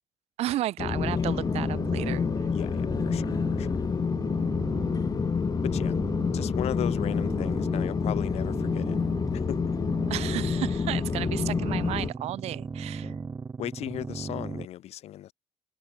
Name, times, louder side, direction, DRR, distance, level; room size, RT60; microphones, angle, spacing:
voice 1, 0.4-2.2 10.1-13.1, right 14 dB, 80° right, 0.5 m, -33 dB
sound 1, 0.8-12.1, left 6 dB, 35° left, 0.8 m, -28 dB
sound 2, 1.3-14.7, right 5 dB, 30° right, 0.7 m, -37 dB
voice 2, 2.5-3.7 5.6-6.0 6.3-9.0 9.3-9.6 13.0-13.2 13.6-15.3, left 13 dB, 80° left, 1.8 m, -37 dB
Guitar, 6.6-13.2, right 1 dB, 5° right, 3.7 m, -50 dB
cardioid pair, 90°, 11 cm